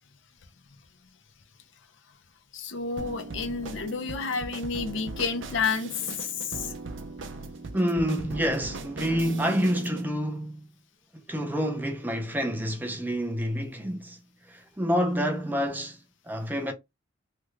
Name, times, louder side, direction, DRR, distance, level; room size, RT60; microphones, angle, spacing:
voice 1, 2.5-6.7, left 5 dB, 70° left, 0.7 m, -30 dB
sound 1, 3.0-10.1, right 3 dB, 75° right, 0.6 m, -39 dB
voice 2, 7.7-10.6 11.3-14.2 14.5-16.0 16.3-16.7, equal, 10° right, 0.6 m, -28 dB
3.3 x 2.3 x 3.1 m
head